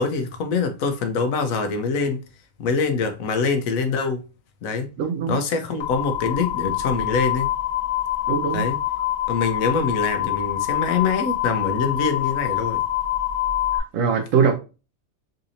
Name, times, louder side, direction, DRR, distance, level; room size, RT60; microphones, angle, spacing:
voice 1, 0.0-2.2 2.6-4.2 4.6-4.9 5.3-7.5 8.5-8.8 9.3-12.8, left 4 dB, 85° left, 1.1 m, -24 dB
voice 2, 5.0-5.4 8.3-8.6 13.9-14.6, right 6 dB, 75° right, 1.0 m, -21 dB
sound 1, 5.8-13.8, left 13 dB, 65° left, 1.1 m, -25 dB
4.0 x 2.8 x 2.5 m
omnidirectional pair, 1.4 m